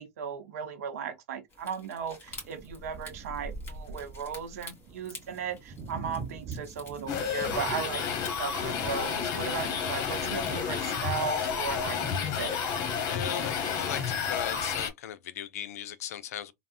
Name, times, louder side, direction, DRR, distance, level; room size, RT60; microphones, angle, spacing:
voice 1, 0.0-8.1 8.4-12.6, right 7 dB, 80° right, 0.7 m, -36 dB
sound 1, 1.5-8.7, left 3 dB, 25° left, 2.0 m, -50 dB
sound 2, 2.3-11.9, right 4 dB, 40° right, 0.6 m, -45 dB
sound 3, 7.1-14.9, left 7 dB, 50° left, 0.9 m, -31 dB
voice 2, 13.1-16.5, left 10 dB, 80° left, 0.4 m, -38 dB
3.5 x 2.0 x 2.4 m
hypercardioid pair, 90°, 8 cm